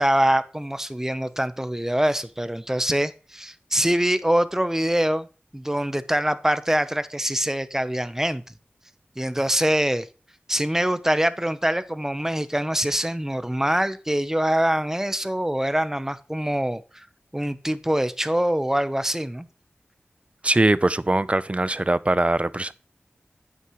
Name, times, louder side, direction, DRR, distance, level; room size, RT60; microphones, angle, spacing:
voice 1, 0.0-5.3 5.5-8.4 9.2-10.1 10.5-17.0 17.3-19.5, right 1 dB, 10° right, 0.9 m, -24 dB
voice 2, 20.4-22.7, right 2 dB, 30° right, 0.5 m, -21 dB
9.4 x 8.6 x 3.1 m
wide cardioid pair, 45°, 4 cm